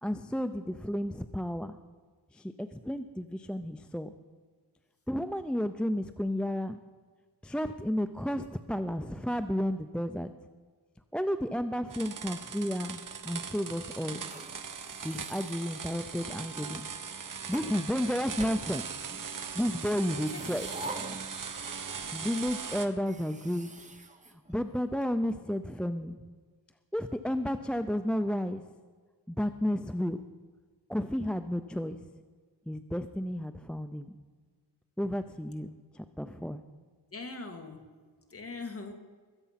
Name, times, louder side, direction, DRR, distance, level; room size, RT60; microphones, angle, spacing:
voice 1, 0.0-1.8 2.3-4.1 5.1-6.8 7.4-10.3 11.1-14.2 14.9-16.8 17.3-18.8 19.5-20.7 22.1-23.7 24.3-26.2 26.9-28.7 29.3-30.2 30.9-32.1 32.7-34.2 35.0-36.6, equal, 5° left, 9 dB, 0.4 m, -32 dB
sound 1, 11.9-22.9, right 6 dB, 50° right, 1.2 m, -40 dB
sound 2, 14.0-16.3 17.1-17.7 18.4-19.3 20.0-22.2 22.5-22.6 23.0-25.0, right 2 dB, 20° right, 1.0 m, -46 dB
voice 2, 19.8-20.6 37.1-37.9 38.3-38.9, left 3 dB, 35° left, 4 dB, 1.8 m, -42 dB
22.0 x 8.2 x 5.8 m, 1.5 s
wide cardioid pair, 135°, 42 cm